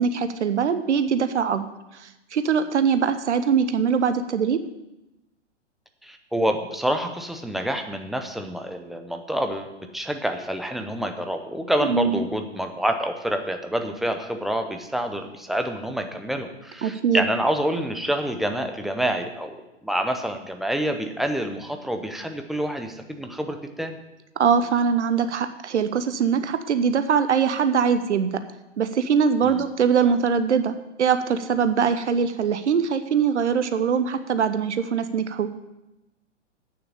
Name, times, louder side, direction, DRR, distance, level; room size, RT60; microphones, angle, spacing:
voice 1, 0.0-4.6 11.8-12.2 16.8-17.3 24.4-28.4 28.8-35.5, right 6 dB, 70° right, 10 dB, 0.9 m, -22 dB
voice 2, 6.0-24.0 29.4-29.6, equal, ahead, 5 dB, 0.6 m, -27 dB
8.8 x 7.0 x 8.7 m, 0.96 s
figure-of-eight pair, 115°, 36 cm